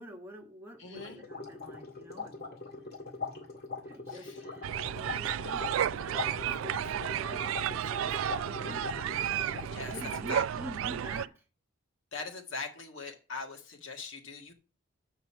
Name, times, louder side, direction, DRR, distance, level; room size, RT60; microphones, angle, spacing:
voice 1, 0.0-2.4 3.8-5.7 6.1-9.3 9.6-11.4, equal, 10° right, 1.5 m, -47 dB
voice 2, 0.8-1.2 4.1-4.4 9.7-9.9 10.3-10.4 12.1-14.5, left 3 dB, 70° left, 1.8 m, -41 dB
sound 1, 0.9-10.4, left 3 dB, 50° left, 2.0 m, -41 dB
sound 2, 4.6-11.3, right 10 dB, 75° right, 0.3 m, -32 dB
7.2 x 5.5 x 5.7 m
head